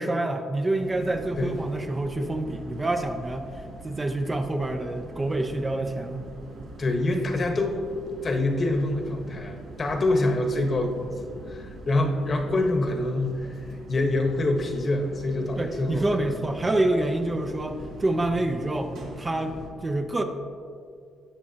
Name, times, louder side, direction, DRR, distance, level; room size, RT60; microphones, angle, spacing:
voice 1, 0.0-3.5 3.8-6.3 15.6-19.5 19.8-20.2, right 2 dB, 20° right, 5 dB, 0.7 m, -27 dB
sound 1, 0.7-19.7, right 1 dB, 85° right, 1.9 m, -43 dB
voice 2, 6.8-7.9 8.2-13.5 13.9-16.3, left 2 dB, 40° left, 3 dB, 1.2 m, -26 dB
17.0 x 6.1 x 2.9 m, 2.2 s
cardioid pair, 90°, 0 cm